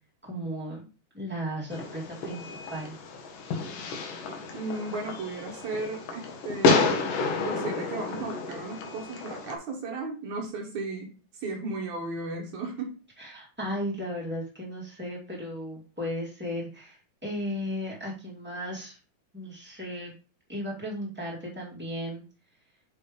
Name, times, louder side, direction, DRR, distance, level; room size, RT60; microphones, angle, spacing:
voice 1, 0.2-0.8 1.1-2.9 13.2-19.0 19.3-20.1 20.5-22.2, equal, 5° right, -5 dB, 1.0 m, -35 dB
Fireworks, 1.7-9.6, left 3 dB, 70° left, 2.3 m, -30 dB
voice 2, 4.5-7.1 7.4-13.0, right 3 dB, 65° right, 1 dB, 1.9 m, -35 dB
6.6 x 3.3 x 5.1 m, 0.35 s
omnidirectional pair, 4.7 m